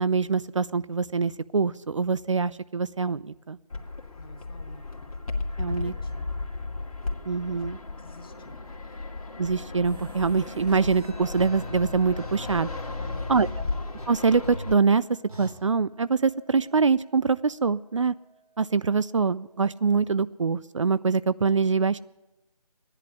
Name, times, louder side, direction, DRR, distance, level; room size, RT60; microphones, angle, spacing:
voice 1, 0.0-3.6 5.6-5.9 7.3-7.8 9.4-12.7 13.3-13.5 14.1-15.0 15.4-18.1 18.6-22.0, right 5 dB, 55° right, 17 dB, 0.4 m, -24 dB
Fixed-wing aircraft airplane, 3.7-14.7, left 3 dB, 65° left, 2.1 m, -35 dB
voice 2, 4.1-5.0 5.7-6.4 7.4-9.0 13.0-13.7, left 3 dB, 35° left, 7 dB, 1.4 m, -51 dB
sound 1, 9.8-13.5 14.0-14.1 14.4-14.7 15.3-15.5, left 1 dB, 70° right, 4.7 m, -41 dB
sound 2, 11.0-20.0, right 2 dB, ahead, 1.4 m, -55 dB
14.5 x 10.5 x 8.3 m, 0.98 s
figure-of-eight pair, 165°, 19 cm